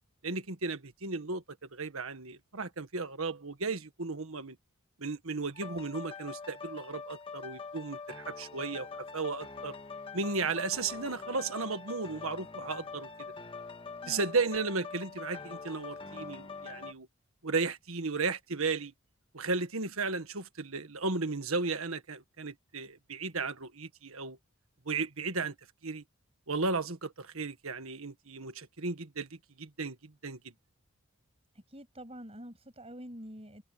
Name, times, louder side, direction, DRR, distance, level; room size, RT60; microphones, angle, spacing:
voice 1, 0.2-1.4 1.7-4.6 5.0-8.9 9.1-9.7 10.1-13.1 14.1-17.1 17.4-18.9 19.3-24.4 24.8-25.5 25.8-26.0 26.5-30.5, right 4 dB, 70° right, 1.6 m, -35 dB
sound 1, 5.5-16.9, left 4 dB, 25° left, 1.7 m, -44 dB
voice 2, 14.0-14.3 31.5-33.6, equal, 25° right, 7.9 m, -46 dB
head